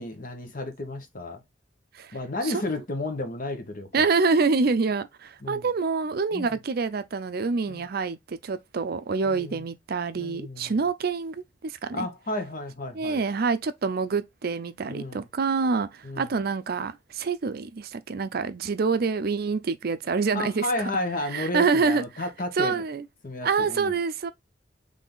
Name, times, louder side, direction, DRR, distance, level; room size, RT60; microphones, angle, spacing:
voice 1, 0.0-1.4 2.1-4.1 5.4-5.7 6.3-6.5 7.7-7.8 9.2-9.6 10.2-10.8 11.9-13.2 14.9-15.3 16.0-16.3 20.3-22.8 23.2-23.9, left 2 dB, 50° left, 1.1 m, -32 dB
voice 2, 3.9-12.1 12.9-20.7 21.3-22.3 22.6-23.0 23.4-24.3, right 4 dB, 55° right, 0.5 m, -26 dB
3.7 x 3.4 x 3.8 m
head